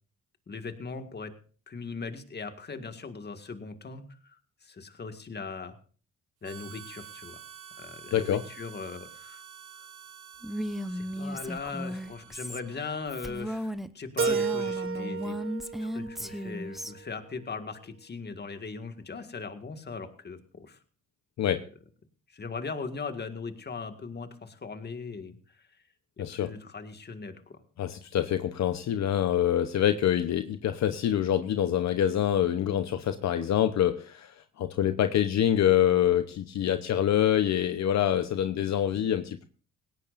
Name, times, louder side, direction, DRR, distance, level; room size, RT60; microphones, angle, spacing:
voice 1, 0.5-1.3 1.7-5.8 6.4-7.4 7.8-9.4 9.7-9.9 10.9-15.4 15.6-20.8 22.3-25.7 26.2-27.6, left 4 dB, 35° left, 8 dB, 1.9 m, -39 dB
Harmonica, 6.4-13.7, right 9 dB, 85° right, 1.6 m, -49 dB
voice 2, 8.1-8.4 21.4-21.7 26.2-26.5 27.8-39.4, left 10 dB, 65° left, 10 dB, 0.9 m, -26 dB
Female speech woman speaking, 10.4-13.9 14.2-16.9, equal, ahead, 0.9 m, -35 dB
Keyboard (musical), 14.2-17.1, right 6 dB, 45° right, 0.7 m, -32 dB
18.5 x 17.0 x 2.5 m, 0.40 s
cardioid pair, 90°, 30 cm